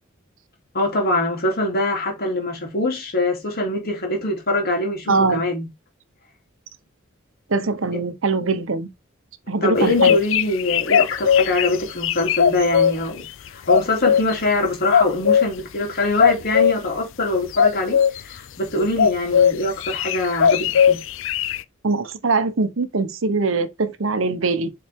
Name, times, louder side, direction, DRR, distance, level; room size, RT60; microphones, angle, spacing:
voice 1, 0.7-5.7 9.6-13.2 13.5-21.0, left 2 dB, 50° left, 3.2 m, -23 dB
voice 2, 5.1-5.4 7.5-8.9 9.5-10.2 21.8-24.7, right 3 dB, 70° right, 0.9 m, -22 dB
sound 1, 9.7-12.9 13.7-14.3 14.9-15.5 16.2-16.7 17.5-18.2 19.0-19.5 19.8-21.6, left 7 dB, 65° left, 0.5 m, -17 dB
7.4 x 4.1 x 3.6 m
head